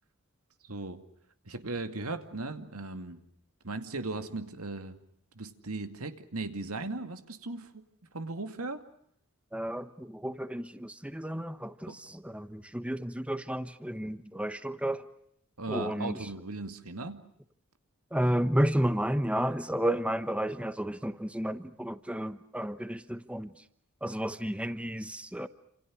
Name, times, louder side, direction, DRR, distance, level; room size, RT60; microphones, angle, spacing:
voice 1, 0.6-1.0 1.5-3.2 3.6-5.0 5.3-7.8 8.1-8.8 11.9-12.0 15.6-17.2, right 2 dB, 90° right, 8 dB, 2.3 m, -37 dB
voice 2, 9.5-15.0 15.7-16.2 18.1-23.5 24.0-25.5, right 1 dB, 5° right, 12 dB, 1.0 m, -32 dB
28.5 x 28.0 x 6.3 m, 0.70 s
head